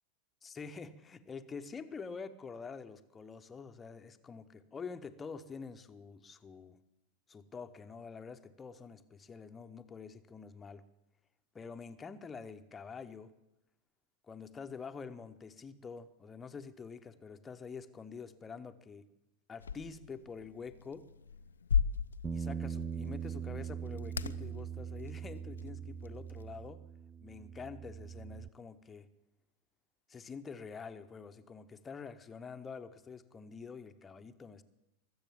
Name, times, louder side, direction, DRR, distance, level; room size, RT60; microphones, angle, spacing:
voice 1, 0.4-6.8 7.3-10.8 11.5-13.3 14.3-19.1 19.5-21.1 22.3-26.8 27.2-29.1 30.1-34.6, left 5 dB, 15° left, 8 dB, 0.8 m, -47 dB
sound 1, 19.6-26.7, left 6 dB, 70° left, 0.5 m, -39 dB
Bass guitar, 22.2-28.5, right 7 dB, 15° right, 0.5 m, -41 dB
22.5 x 7.9 x 7.3 m, 0.93 s
figure-of-eight pair, 90°, 0 cm